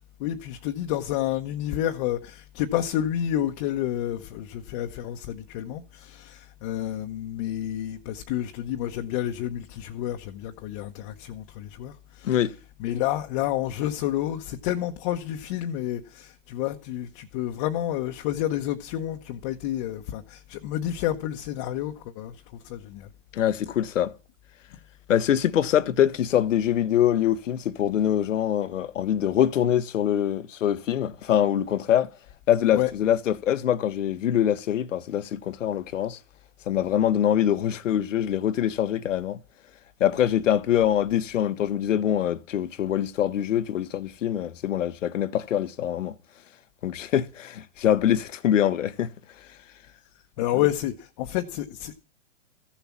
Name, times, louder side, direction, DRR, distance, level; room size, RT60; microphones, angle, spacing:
voice 1, 0.2-12.3 12.8-23.1 32.7-32.9 50.4-52.0, left 12 dB, 30° left, 0.9 m, -29 dB
voice 2, 23.3-24.1 25.1-32.1 32.5-36.2 36.7-39.4 40.0-46.1 46.8-49.1, left 10 dB, 85° left, 1.1 m, -24 dB
14.5 x 7.1 x 7.2 m
hypercardioid pair, 155°, 37 cm